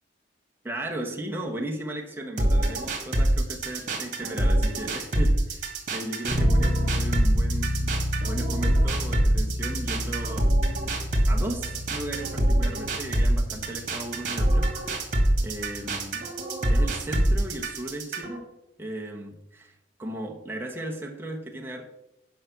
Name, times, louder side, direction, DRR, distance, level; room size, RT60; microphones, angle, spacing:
voice 1, 0.6-10.6 11.3-15.1 15.4-16.3 16.7-18.5 18.8-21.9, right 1 dB, 10° right, 1.0 m, -36 dB
sound 1, 2.4-18.4, right 1 dB, 40° right, 2.1 m, -24 dB
sound 2, 6.3-16.0, equal, 15° left, 1.1 m, -31 dB
9.6 x 5.8 x 6.7 m
head